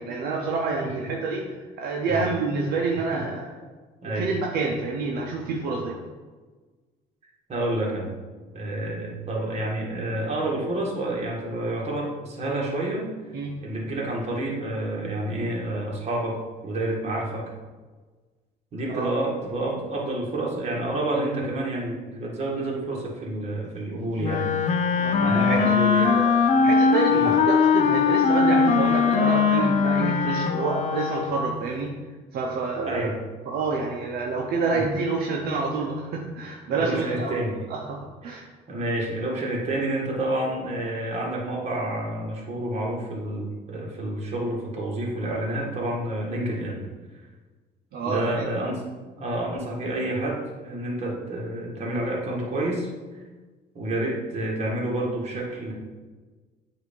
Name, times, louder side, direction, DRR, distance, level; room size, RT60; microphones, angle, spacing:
voice 1, 0.0-3.5 4.0-6.0 13.3-13.6 18.9-19.1 25.0-26.4 26.6-32.0 32.3-33.1 33.5-37.4 37.7-38.4 47.9-48.4, right 4 dB, 70° right, -1 dB, 0.8 m, -28 dB
voice 2, 7.5-8.1 8.5-13.1 13.6-16.4 16.6-17.5 18.7-24.5 25.2-26.1 26.5-26.7 27.1-27.3 32.8-33.1 34.7-34.8 36.7-37.6 38.2-46.8 48.0-48.8 49.2-52.9 53.7-55.7, right 1 dB, 40° right, -2 dB, 1.8 m, -29 dB
Wind instrument woodwind instrument, 24.2-31.5, left 5 dB, 45° left, 0.6 m, -21 dB
7.9 x 2.8 x 5.3 m, 1.3 s
cardioid pair, 110°, 17 cm